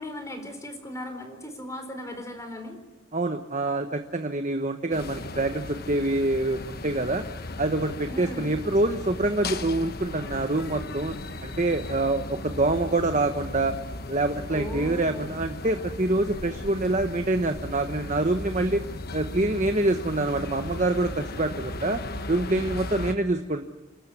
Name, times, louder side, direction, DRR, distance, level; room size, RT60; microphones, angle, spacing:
voice 1, 0.0-2.8 8.1-8.5 14.5-15.3, left 1 dB, 15° left, 6 dB, 4.2 m, -37 dB
voice 2, 3.1-7.3 7.6-11.1 11.4-13.8 14.1-18.8 19.1-22.0 22.3-23.7, right 2 dB, 35° right, 7 dB, 1.2 m, -26 dB
sound 1, 4.9-23.1, left 2 dB, 50° left, 1.3 m, -36 dB
29.0 x 13.5 x 9.9 m, 1.2 s
head